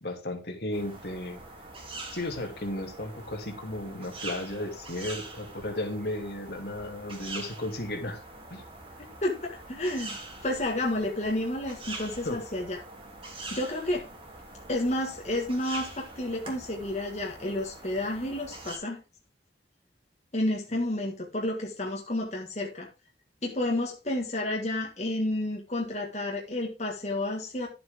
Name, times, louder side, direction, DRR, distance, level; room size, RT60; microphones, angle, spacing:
voice 1, 0.0-1.4 2.1-8.2 8.5-8.6 12.2-12.4, left 1 dB, 65° left, 4 dB, 2.5 m, -34 dB
sound 1, 0.7-18.8, right 2 dB, 30° right, 2.8 m, -44 dB
voice 2, 9.2-12.8 13.5-14.1 14.7-19.0 20.3-22.9 23.4-27.7, left 1 dB, 40° left, -1 dB, 1.8 m, -30 dB
12.0 x 7.8 x 3.7 m, 0.27 s
head